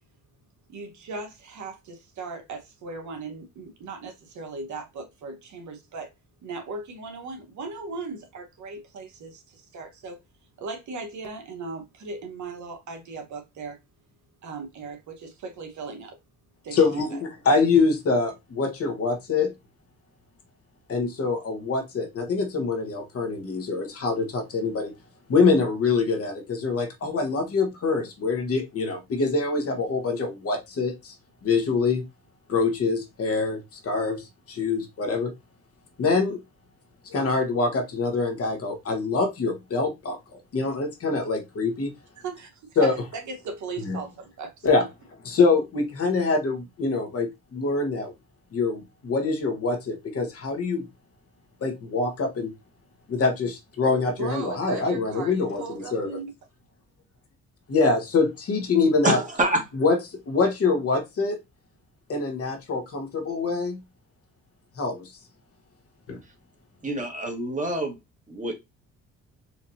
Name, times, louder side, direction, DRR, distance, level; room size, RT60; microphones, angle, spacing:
voice 1, 0.7-6.1 6.4-10.2 10.6-13.8 14.4-16.2 16.6-17.0 42.2-44.7 54.2-56.3, right 4 dB, 70° right, 1.2 m, -37 dB
voice 2, 16.7-19.5 20.9-24.9 25.3-31.1 31.4-32.0 32.5-35.3 36.0-36.4 37.0-41.9 42.8-42.9 43.8-44.0 44.6-44.8 45.2-48.1 48.5-50.9 51.6-52.5 53.1-56.1 57.7-59.2 59.8-61.4 62.1-63.8 64.8-65.0 66.1-66.2, left 4 dB, 50° left, 1.2 m, -25 dB
voice 3, 59.0-59.6 66.8-68.0 68.3-68.5, right 1 dB, 25° right, 1.6 m, -26 dB
4.4 x 2.7 x 2.7 m
cardioid pair, 90°, 30 cm